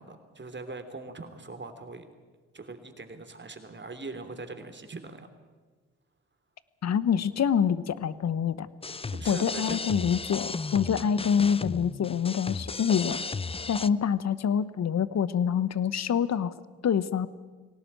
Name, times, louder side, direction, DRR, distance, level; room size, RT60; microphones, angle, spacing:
voice 1, 0.0-2.0 2.5-5.3 8.9-9.8, right 3 dB, 35° right, 7 dB, 3.1 m, -41 dB
voice 2, 6.8-8.7 9.3-13.2 13.7-16.5 16.8-17.3, left 7 dB, 50° left, 17 dB, 1.1 m, -26 dB
sound 1, 8.8-13.9, left 4 dB, 15° left, 0.6 m, -35 dB
20.0 x 18.0 x 8.8 m, 1.4 s
hypercardioid pair, 45°, 34 cm